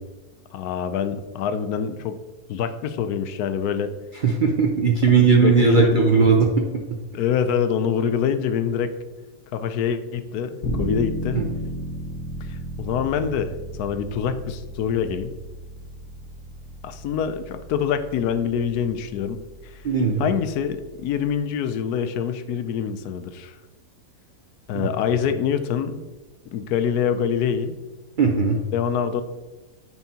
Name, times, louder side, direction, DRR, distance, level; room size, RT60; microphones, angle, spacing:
voice 1, 0.5-2.2 2.5-3.9 5.1-6.2 7.1-8.9 9.5-11.4 12.4-15.3 16.8-19.8 20.2-23.6 24.7-26.0 26.5-27.8 28.7-29.2, left 8 dB, 85° left, 9 dB, 1.1 m, -25 dB
voice 2, 4.2-6.7 11.3-11.4 19.8-20.3 24.7-24.9 28.2-28.6, right 5 dB, 55° right, 1 dB, 0.5 m, -18 dB
sound 1, 10.6-21.4, right 1 dB, 60° left, 1.7 m, -35 dB
9.1 x 4.6 x 2.8 m, 1.2 s
omnidirectional pair, 1.6 m